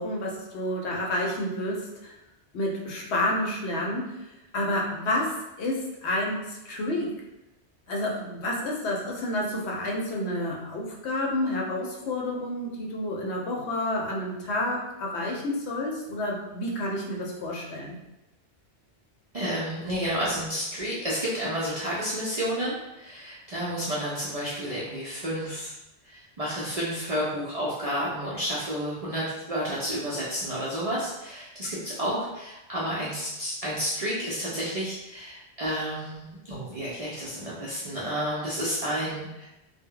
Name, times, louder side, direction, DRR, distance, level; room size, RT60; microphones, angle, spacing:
voice 1, 0.0-2.1 2.5-4.1 4.5-7.1 7.9-18.0, left 1 dB, 75° left, -1 dB, 0.9 m, -29 dB
voice 2, 19.3-25.7 26.0-39.5, equal, 55° right, -8 dB, 0.4 m, -31 dB
2.1 x 2.0 x 3.6 m, 0.94 s
omnidirectional pair, 1.2 m